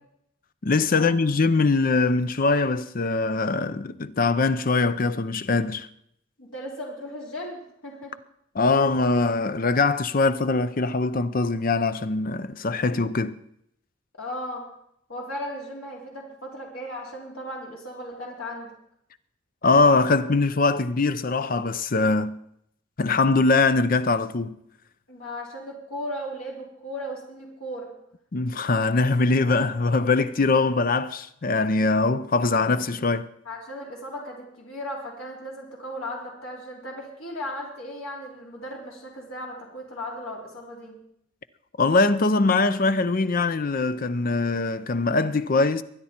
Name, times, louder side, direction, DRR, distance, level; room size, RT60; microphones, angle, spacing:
voice 1, 0.6-5.9 8.6-13.3 19.6-22.4 23.0-24.6 28.3-33.3 41.8-45.8, left 3 dB, 40° left, 0.5 m, -22 dB
voice 2, 6.4-8.1 14.2-14.6 15.1-18.7 25.1-27.9 33.4-41.0, equal, 80° left, 3.4 m, -36 dB
23.5 x 9.8 x 4.4 m
head